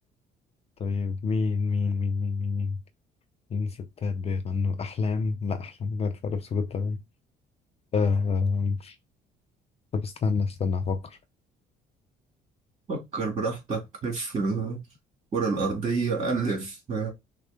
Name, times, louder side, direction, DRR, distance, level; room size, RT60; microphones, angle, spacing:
voice 1, 0.8-2.8 3.5-7.0 7.9-9.0 9.9-11.2, left 4 dB, 35° left, 0.5 m, -27 dB
voice 2, 12.9-14.8 15.3-17.1, right 4 dB, 30° right, 2.3 m, -28 dB
6.2 x 2.1 x 3.4 m
cardioid pair, 110°, 17 cm